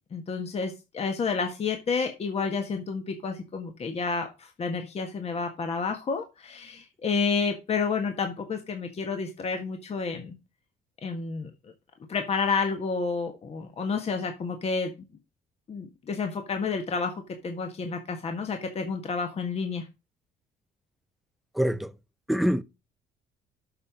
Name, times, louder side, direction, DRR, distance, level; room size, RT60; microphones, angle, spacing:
voice 1, 0.1-10.4 11.0-11.5 12.1-14.9 15.7-19.9, left 5 dB, 40° left, 1.6 m, -30 dB
voice 2, 21.6-21.9 22.3-22.6, equal, ahead, 0.6 m, -24 dB
7.8 x 5.9 x 5.0 m
cardioid pair, 110°, 17 cm